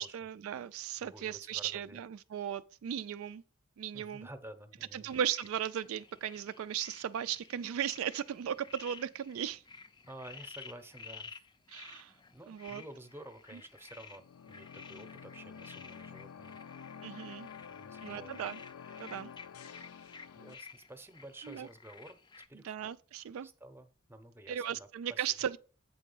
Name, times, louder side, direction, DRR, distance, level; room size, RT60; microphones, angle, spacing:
voice 1, 0.0-3.4 3.8-4.3 4.9-9.6 11.7-12.1 12.5-12.8 13.5-13.6 17.0-17.5 18.0-18.6 19.0-19.3 21.4-21.7 22.6-23.5 24.5-25.6, right 9 dB, 70° right, 0.3 m, -37 dB
voice 2, 1.0-2.0 3.9-5.1 10.1-11.5 12.3-16.6 17.7-18.4 20.4-22.2 22.5-22.7 23.4-25.3, right 1 dB, 10° right, 0.7 m, -51 dB
sound 1, 5.1-22.5, left 5 dB, 20° left, 0.4 m, -53 dB
sound 2, 14.1-20.5, left 7 dB, 80° left, 0.4 m, -49 dB
8.4 x 3.7 x 5.4 m
head